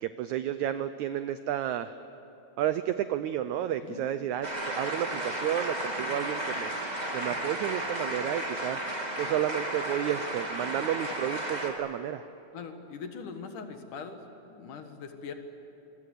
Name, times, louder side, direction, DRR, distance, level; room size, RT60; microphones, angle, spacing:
voice 1, 0.0-1.9 2.6-6.7 7.1-8.8 9.2-12.2, right 11 dB, 85° right, 11 dB, 1.6 m, -31 dB
sound 1, 4.4-11.7, right 1 dB, 15° right, 1.8 m, -33 dB
voice 2, 12.5-14.2 14.5-15.3, left 5 dB, 65° left, 6 dB, 3.0 m, -41 dB
27.5 x 22.5 x 8.3 m, 2.9 s
omnidirectional pair, 4.2 m